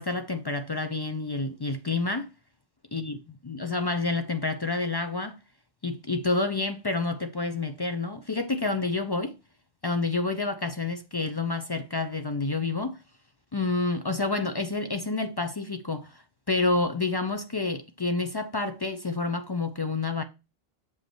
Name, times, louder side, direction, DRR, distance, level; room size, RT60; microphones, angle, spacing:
voice 1, 0.0-2.3 2.9-3.2 3.4-5.4 5.8-9.3 9.8-13.0 13.5-16.2 16.5-20.2, left 3 dB, 35° left, 0.4 m, -29 dB
7.1 x 5.2 x 3.0 m
omnidirectional pair, 1.1 m